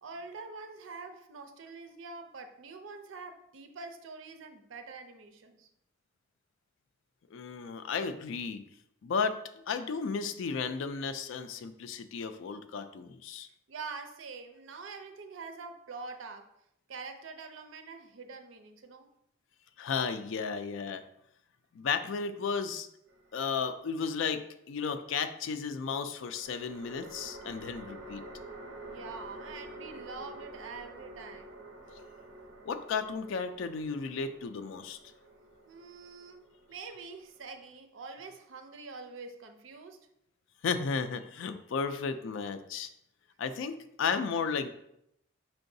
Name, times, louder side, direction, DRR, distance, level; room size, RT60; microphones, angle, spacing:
voice 1, 0.0-5.7 13.7-16.5 16.9-19.1 28.9-31.5 35.7-36.4 36.7-40.1, right 4 dB, 80° right, 7 dB, 0.5 m, -45 dB
voice 2, 7.3-8.6 9.0-13.5 19.8-21.0 21.7-22.9 23.3-28.2 32.7-35.0 40.6-42.9 43.4-44.7, left 5 dB, 75° left, 10 dB, 0.4 m, -34 dB
sound 1, 23.1-24.0 26.2-37.6, right 1 dB, 65° right, 0.9 m, -49 dB
4.4 x 3.8 x 2.6 m, 0.78 s
head